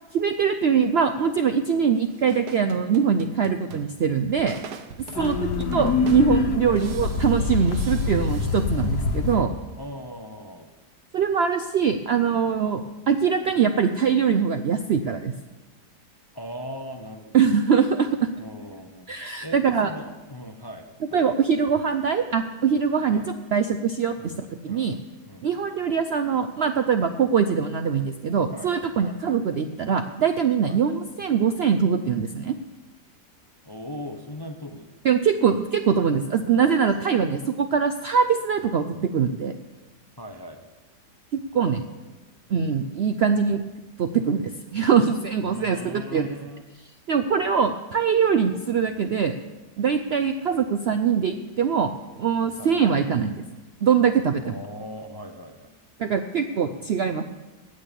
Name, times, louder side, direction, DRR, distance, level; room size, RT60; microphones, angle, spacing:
voice 1, 0.1-4.6 5.2-5.4 5.7-9.5 11.1-15.3 17.3-18.3 19.1-19.9 21.1-23.2 23.5-24.3 24.6-24.9 25.4-32.6 35.0-38.9 39.1-39.6 41.3-41.8 42.5-43.6 44.0-46.3 47.1-49.4 49.8-51.9 52.2-53.4 53.8-54.6 56.0-57.2, right 6 dB, 90° right, 8 dB, 0.5 m, -22 dB
sound 1, 1.9-9.4, right 7 dB, 75° right, 1.4 m, -43 dB
sound 2, 5.1-9.4, left 4 dB, 75° left, 1.6 m, -25 dB
voice 2, 5.1-5.5 6.7-6.8 9.8-10.7 16.3-17.6 18.4-21.3 23.1-23.3 24.2-24.4 24.6-24.9 25.3-25.7 28.5-29.3 30.7-30.8 33.7-34.9 40.2-40.7 45.4-46.6 52.6-52.7 54.4-55.8, equal, 25° left, 5 dB, 0.5 m, -39 dB
18.0 x 6.6 x 6.9 m, 1.2 s
omnidirectional pair, 1.8 m